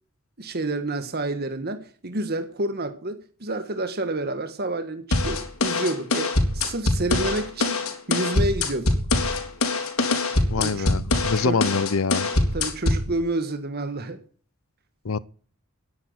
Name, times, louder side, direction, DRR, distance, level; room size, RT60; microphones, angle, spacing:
voice 1, 0.4-8.9 10.6-10.9 11.3-11.6 12.3-14.2, right 2 dB, 50° right, 1.7 m, -29 dB
sound 1, 5.1-13.1, left 2 dB, 90° left, 3.8 m, -23 dB
voice 2, 10.5-12.3 15.0-15.2, left 4 dB, 70° left, 0.7 m, -25 dB
13.0 x 10.5 x 8.0 m
head